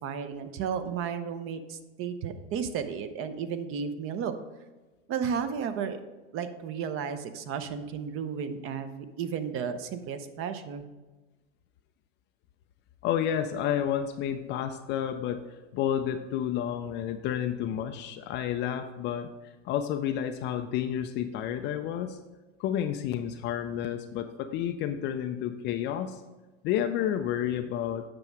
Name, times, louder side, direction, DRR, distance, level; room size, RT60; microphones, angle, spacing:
voice 1, 0.0-4.3 5.1-6.0 6.3-10.8, right 7 dB, 35° right, 10 dB, 0.7 m, -33 dB
voice 2, 13.0-15.4 15.7-19.3 19.6-22.2 22.6-26.2 26.6-28.0, left 10 dB, 30° left, 8 dB, 0.4 m, -30 dB
7.8 x 5.9 x 4.6 m, 1.2 s
hypercardioid pair, 100°, 37 cm